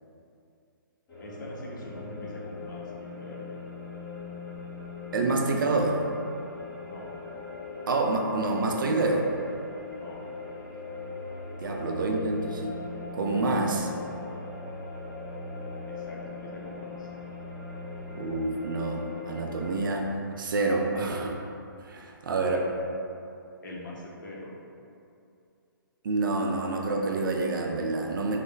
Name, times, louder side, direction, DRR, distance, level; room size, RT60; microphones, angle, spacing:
sound 1, 1.1-19.9, left 3 dB, 20° left, 0.9 m, -40 dB
voice 1, 1.2-3.6 6.8-7.1 10.0-10.2 12.3-12.4 15.9-17.1 22.4-22.7 23.6-24.5, left 1 dB, 60° left, -3 dB, 0.7 m, -42 dB
voice 2, 5.1-6.0 7.9-9.3 11.6-12.8 13.1-13.9 18.1-20.1 20.4-21.4 21.8-22.6 26.0-28.4, right 3 dB, 70° right, 1 dB, 0.4 m, -27 dB
3.2 x 2.1 x 3.3 m, 2.6 s
hypercardioid pair, 145°, 12 cm